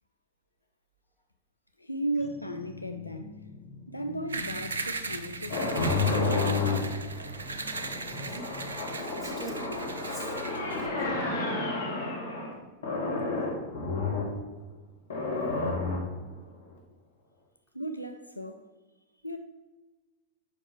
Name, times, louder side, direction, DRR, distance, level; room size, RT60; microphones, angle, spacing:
voice 1, 1.8-3.4 3.9-6.6 17.7-18.6 19.2-19.4, right 1 dB, 85° left, 0.5 m, -36 dB
sound 1, 2.2-8.9, left 4 dB, 20° right, 1.8 m, -46 dB
sound 2, 4.3-10.8, right 3 dB, 75° right, 0.5 m, -38 dB
sound 3, 5.5-12.5 12.8-14.3 15.1-16.2, left 3 dB, 65° left, 1.7 m, -31 dB
voice 2, 8.1-8.5 9.0-11.2, equal, ahead, 2.2 m, -45 dB
7.1 x 5.4 x 4.6 m
figure-of-eight pair, 90°, 0 cm